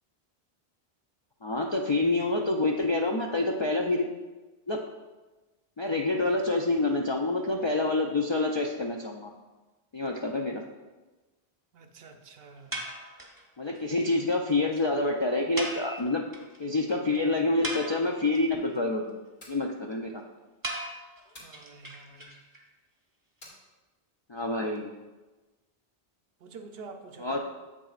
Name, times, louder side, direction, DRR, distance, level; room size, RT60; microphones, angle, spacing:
voice 1, 1.4-4.1 4.7-4.8 5.8-9.3 9.9-10.6 13.6-16.3 16.6-19.2 19.5-20.2 24.3-24.9 27.2-27.4, left 2 dB, 50° left, 0 dB, 0.3 m, -27 dB
voice 2, 11.7-12.8 21.3-22.3 26.4-27.4, right 4 dB, 75° right, 6 dB, 0.8 m, -47 dB
sound 1, 12.7-13.4 13.8-13.9 14.0-14.2 14.4-14.5 14.7-14.8 15.6-16.6 16.9-17.0 17.4-18.4 20.6-22.6, right 1 dB, 20° right, 0.8 m, -37 dB
sound 2, 19.3-19.6 21.3-21.6 23.4-23.6, left 1 dB, 70° left, 2.3 m, -49 dB
7.9 x 6.1 x 2.4 m, 1.2 s
omnidirectional pair, 1.0 m